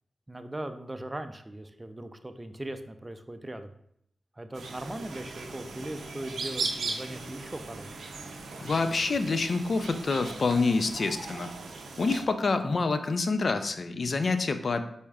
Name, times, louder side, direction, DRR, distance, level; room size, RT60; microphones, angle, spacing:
voice 1, 0.3-3.7 4.4-7.9, right 1 dB, 25° right, 8 dB, 0.4 m, -39 dB
sound 1, 4.5-12.2, right 3 dB, 90° right, 0.5 m, -38 dB
voice 2, 8.6-11.5 12.0-14.9, left 3 dB, 60° left, 9 dB, 0.4 m, -27 dB
4.7 x 4.1 x 2.3 m, 0.73 s
cardioid pair, 50°, 0 cm